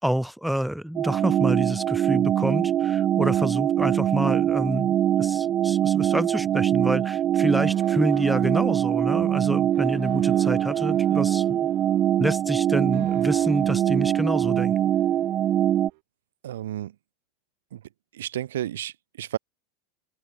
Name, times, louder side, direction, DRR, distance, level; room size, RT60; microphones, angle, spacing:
voice 1, 0.0-11.6 12.2-14.8, equal, ahead, 2.2 m, -28 dB
sound 1, 1.0-15.9, right 11 dB, 40° right, 0.4 m, -23 dB
sound 2, 7.4-16.0, right 34 dB, 65° right, 4.9 m, -47 dB
voice 2, 16.4-16.9 17.7-17.8 18.1-19.4, right 12 dB, 85° right, 2.8 m, -32 dB
open air
hypercardioid pair, 105°, 0 cm